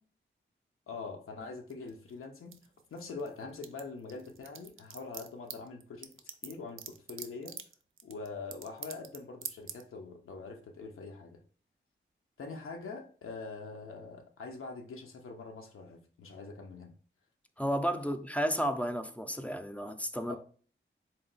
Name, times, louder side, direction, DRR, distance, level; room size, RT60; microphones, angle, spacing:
voice 1, 0.9-2.6 2.9-6.1 6.4-7.6 8.0-11.4 12.4-16.9 18.0-18.1 20.3-20.4, left 4 dB, 90° left, 0.5 m, -44 dB
pillboardplastic handlingnoises tear, 1.7-3.3 3.5-9.2 9.4-9.8, right 8 dB, 80° right, 0.4 m, -43 dB
voice 2, 17.6-20.4, equal, 5° left, 0.3 m, -32 dB
3.9 x 2.2 x 3.9 m
wide cardioid pair, 115°, 21 cm